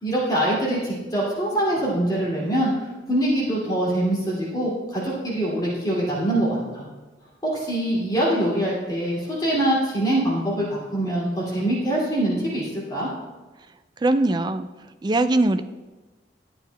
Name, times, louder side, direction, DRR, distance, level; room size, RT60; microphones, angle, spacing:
voice 1, 0.0-6.9 7.4-13.1, right 1 dB, 20° left, -6 dB, 2.3 m, -24 dB
voice 2, 14.0-14.7 15.0-15.6, right 2 dB, 25° right, 10 dB, 0.3 m, -21 dB
12.0 x 9.2 x 2.2 m, 1.2 s
head